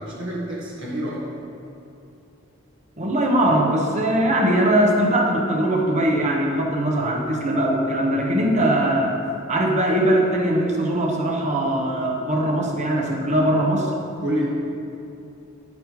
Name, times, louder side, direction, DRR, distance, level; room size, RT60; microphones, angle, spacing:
voice 1, 0.0-1.3 14.2-14.5, equal, 65° right, -6 dB, 1.5 m, -28 dB
voice 2, 3.0-9.2 9.5-13.9, right 1 dB, 35° right, 0 dB, 1.0 m, -21 dB
10.0 x 8.5 x 3.2 m, 2.7 s
head